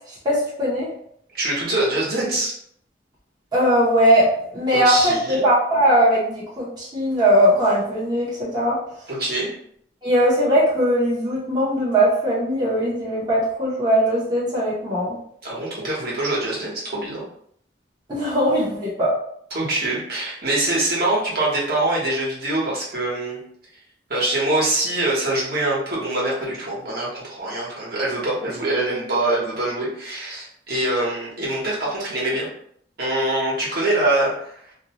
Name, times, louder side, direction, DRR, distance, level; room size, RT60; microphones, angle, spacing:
voice 1, 0.1-0.9 3.5-4.3 4.5-8.8 10.0-15.2 18.1-19.1, equal, 25° right, -8 dB, 0.8 m, -19 dB
voice 2, 1.3-2.5 4.7-5.4 9.1-9.5 15.4-17.2 19.5-23.4 24.1-32.5 33.0-34.7, right 2 dB, 60° right, -5 dB, 1.1 m, -24 dB
2.6 x 2.2 x 2.9 m, 0.66 s
head